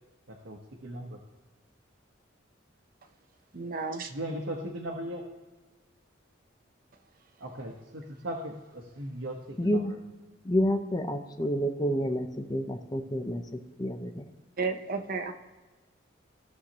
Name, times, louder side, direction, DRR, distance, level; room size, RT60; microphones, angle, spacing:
voice 1, 0.3-1.2 4.1-5.2 7.4-9.8, right 1 dB, 80° right, 0 dB, 1.1 m, -38 dB
voice 2, 3.5-4.1 14.6-15.3, right 4 dB, 50° right, 5 dB, 0.8 m, -32 dB
voice 3, 9.6-9.9 10.4-14.3, equal, 20° left, 6 dB, 0.6 m, -29 dB
15.5 x 6.4 x 2.9 m, 1.2 s
head